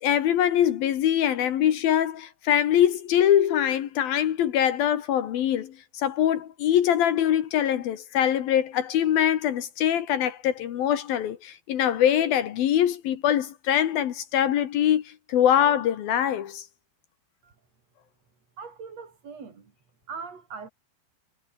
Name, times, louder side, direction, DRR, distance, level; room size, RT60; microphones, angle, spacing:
voice 1, 0.0-16.6, left 10 dB, 65° left, 2.9 m, -23 dB
voice 2, 18.6-19.7 20.1-20.7, right 5 dB, 35° right, 4.4 m, -40 dB
omnidirectional pair, 5.3 m